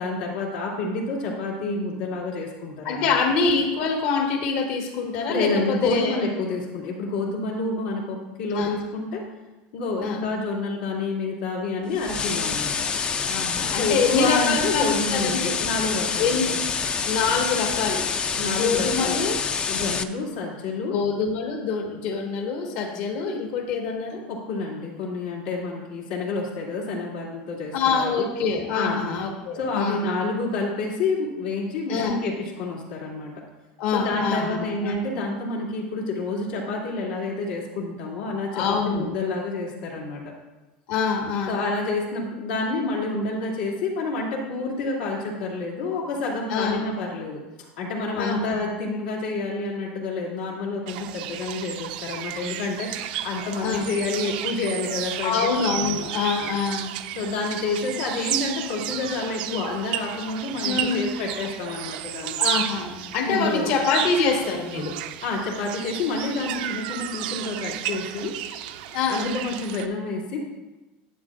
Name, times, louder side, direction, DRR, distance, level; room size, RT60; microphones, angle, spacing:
voice 1, 0.0-3.2 5.3-9.2 9.7-12.7 13.7-16.6 18.4-19.2 19.7-21.0 24.3-28.3 28.7-29.1 29.5-33.3 33.9-40.2 41.5-55.6 57.1-62.4 63.2-63.7 65.2-68.3 69.1-70.4, left 3 dB, 85° left, -2 dB, 2.6 m, -28 dB
voice 2, 2.8-6.2 8.5-8.8 10.0-10.2 13.3-15.5 16.2-16.5 17.1-18.1 18.4-19.4 20.9-24.2 27.7-30.2 31.9-32.2 33.8-35.0 38.5-39.1 40.9-41.6 46.5-46.8 48.1-48.5 53.6-53.9 55.2-57.0 59.5-59.6 60.6-61.1 62.4-65.0 68.9-69.3, left 5 dB, 60° left, 3 dB, 1.5 m, -25 dB
sound 1, 12.0-20.0, left 6 dB, 20° left, 0.4 m, -27 dB
sound 2, 50.9-69.9, right 12 dB, 75° right, 0.5 m, -32 dB
11.0 x 9.1 x 2.5 m, 1.1 s
supercardioid pair, 155°, 5 cm